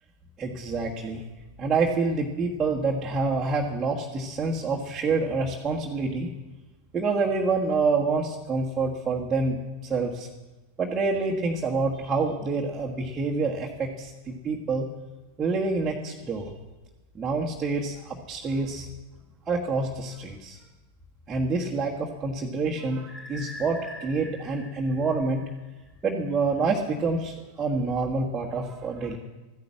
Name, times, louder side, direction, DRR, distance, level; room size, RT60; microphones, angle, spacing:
voice 1, 0.4-1.2 1.6-6.3 6.9-10.3 10.8-14.9 15.4-16.5 17.1-18.9 19.5-20.6 21.3-25.4 26.0-29.2, right 3 dB, 20° right, -3 dB, 1.6 m, -27 dB
sound 1, 23.1-25.9, left 1 dB, 20° left, 3.7 m, -44 dB
14.0 x 10.5 x 7.3 m, 1.2 s
figure-of-eight pair, 90°, 0 cm